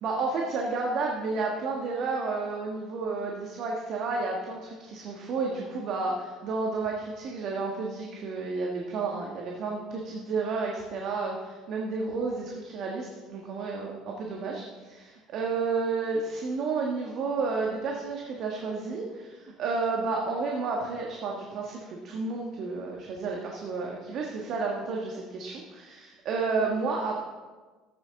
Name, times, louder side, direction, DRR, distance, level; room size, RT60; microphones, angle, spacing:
voice 1, 0.0-27.2, right 4 dB, 55° right, -1 dB, 1.5 m, -31 dB
13.5 x 8.3 x 3.7 m, 1.3 s
hypercardioid pair, 65°, 0 cm